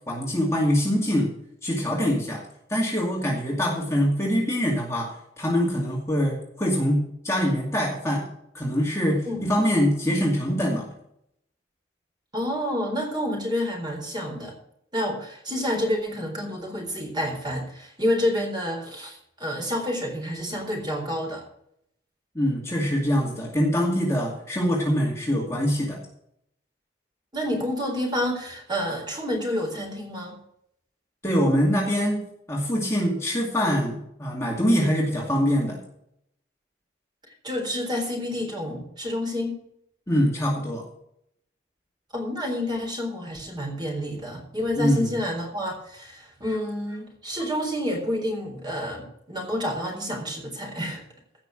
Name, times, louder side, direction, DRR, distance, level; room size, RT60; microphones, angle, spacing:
voice 1, 0.1-1.3 1.6-2.4 2.7-5.1 5.4-10.9 22.3-26.0 31.2-35.8 40.1-40.9 44.8-45.2, equal, 15° left, -3 dB, 2.4 m, -24 dB
voice 2, 12.3-14.6 14.9-21.4 27.3-30.4 37.4-39.6 42.1-51.0, left 1 dB, 25° right, 1 dB, 3.9 m, -29 dB
16.0 x 6.0 x 6.4 m, 0.74 s
head